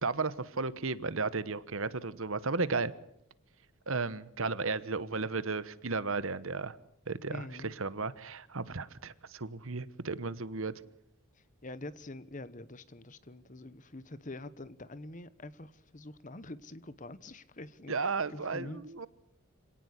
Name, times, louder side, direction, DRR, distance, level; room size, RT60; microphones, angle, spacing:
voice 1, 0.0-2.9 3.9-6.8 7.1-10.7 17.9-19.1, right 4 dB, 65° right, 16 dB, 1.1 m, -34 dB
voice 2, 7.3-7.7 11.3-19.1, left 2 dB, 35° left, 16 dB, 1.1 m, -46 dB
26.0 x 18.0 x 8.2 m, 0.77 s
head